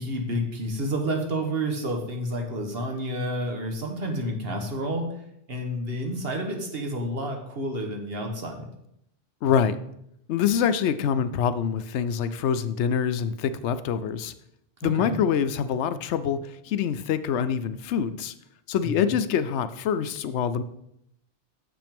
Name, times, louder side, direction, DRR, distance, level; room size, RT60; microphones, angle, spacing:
voice 1, 0.0-5.1 5.5-8.6 14.8-15.2 18.8-19.1, right 1 dB, 60° right, 3 dB, 1.5 m, -30 dB
voice 2, 9.4-9.8 10.3-14.3 14.8-16.4 16.6-18.3 18.7-20.6, left 8 dB, 85° left, 13 dB, 0.9 m, -25 dB
7.0 x 6.0 x 5.2 m, 0.77 s
omnidirectional pair, 1.1 m